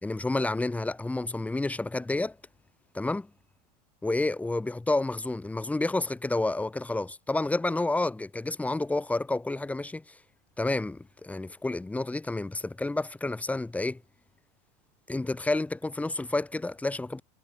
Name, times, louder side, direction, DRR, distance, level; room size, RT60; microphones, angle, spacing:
voice 1, 0.0-2.4 2.9-3.3 4.0-10.2 10.6-14.0 15.1-17.2, left 2 dB, 5° left, 5.6 m, -30 dB
supercardioid pair, 140°, 21 cm